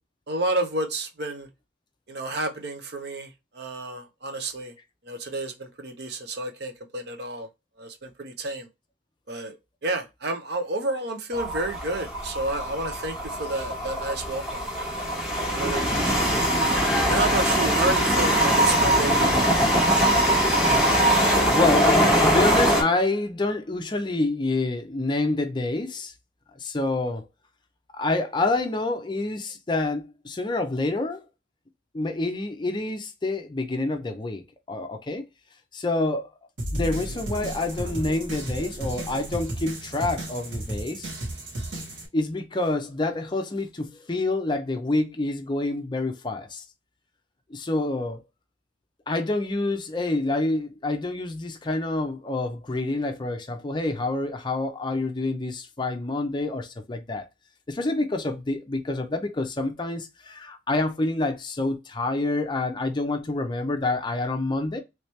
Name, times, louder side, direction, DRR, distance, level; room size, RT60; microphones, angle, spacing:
voice 1, 0.3-1.5 2.1-3.3 3.5-4.7 5.0-7.5 7.8-8.7 9.3-9.6 9.8-14.6 15.5-16.4 17.0-19.6, right 2 dB, 55° right, 0.7 m, -30 dB
sound 1, 11.3-22.8, equal, 5° right, 1.2 m, -22 dB
voice 2, 21.4-26.1 26.6-27.3 27.9-31.2 31.9-35.2 35.7-36.3 36.7-41.1 42.1-46.6 47.5-48.2 49.1-57.2 57.7-64.8, left 2 dB, 25° left, 0.5 m, -27 dB
sound 2, 36.6-42.1, right 1 dB, 75° right, 1.5 m, -33 dB
3.2 x 2.9 x 3.1 m
head